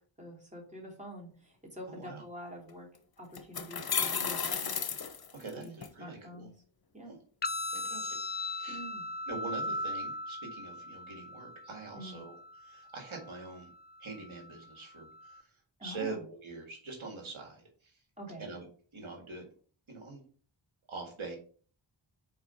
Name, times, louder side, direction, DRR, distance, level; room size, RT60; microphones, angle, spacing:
voice 1, 0.2-2.9 3.2-4.8 5.5-6.5 6.9-7.1 8.7-9.0 11.9-12.2 15.8-16.2 18.2-18.6, equal, 15° right, -2 dB, 2.9 m, -46 dB
voice 2, 1.9-2.2 5.3-6.5 7.0-7.2 7.7-8.9 9.3-13.7 14.0-18.0 18.4-18.7 18.9-19.4 19.9-20.2 20.9-21.4, right 3 dB, 75° right, 1 dB, 1.9 m, -44 dB
sound 1, 2.7-2.8 3.3-5.9, left 6 dB, 50° left, 0.8 m, -33 dB
sound 2, 7.4-15.4, left 2 dB, 25° left, 0.3 m, -39 dB
4.7 x 4.5 x 5.4 m, 0.42 s
wide cardioid pair, 65°, 48 cm